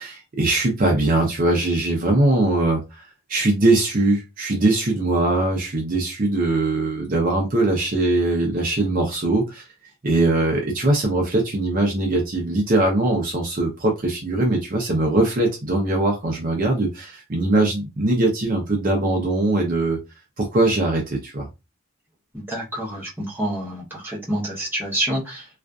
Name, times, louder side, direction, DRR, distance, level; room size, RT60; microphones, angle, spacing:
voice 1, 0.0-9.7 10.0-20.0 20.4-21.5, right 2 dB, 40° right, 0 dB, 0.5 m, -21 dB
voice 2, 22.3-25.5, right 1 dB, 10° right, -5 dB, 0.8 m, -27 dB
2.4 x 2.4 x 2.2 m, 0.25 s
head